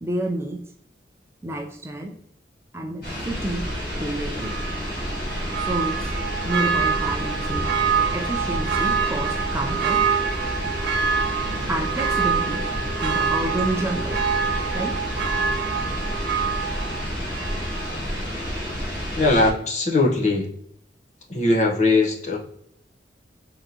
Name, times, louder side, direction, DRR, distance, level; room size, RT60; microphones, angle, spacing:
voice 1, 0.0-0.6 1.4-2.2 2.7-4.6 5.6-6.1 6.4-7.7 8.1-10.1 11.7-12.7 13.0-14.3 14.7-15.0, right 1 dB, 15° right, 2 dB, 0.4 m, -29 dB
sound 1, 3.0-19.5, equal, 55° left, 1.5 m, -30 dB
Church bell, 4.4-18.0 18.4-18.5, right 6 dB, 70° right, 0.5 m, -26 dB
voice 2, 19.2-20.5 21.3-22.4, left 2 dB, 40° left, 1 dB, 0.7 m, -20 dB
3.8 x 3.5 x 2.8 m, 0.69 s
head